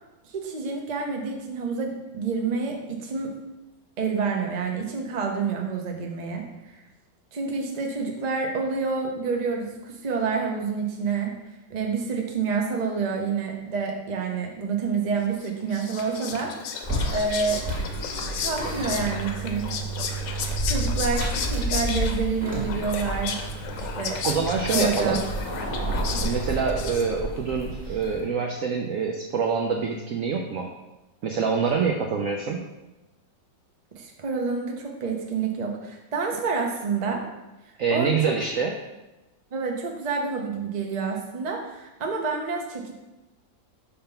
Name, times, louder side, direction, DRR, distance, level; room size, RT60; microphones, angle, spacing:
voice 1, 0.2-3.3 4.0-6.8 7.3-11.3 11.7-16.7 17.1-17.6 18.4-19.7 20.6-23.4 23.9-24.2 24.7-25.2 26.1-26.2 33.9-37.2 37.9-38.1 39.5-42.9, right 5 dB, 45° right, 1 dB, 0.5 m, -28 dB
Whispering, 15.4-27.4, left 6 dB, 75° left, 1.3 m, -33 dB
sound 1, 16.8-28.3, right 1 dB, 5° right, 1.5 m, -31 dB
voice 2, 24.2-25.2 26.2-30.7 31.2-32.6 37.8-38.7, right 5 dB, 80° right, 2 dB, 0.7 m, -25 dB
5.7 x 3.6 x 5.5 m, 1.0 s
omnidirectional pair, 2.1 m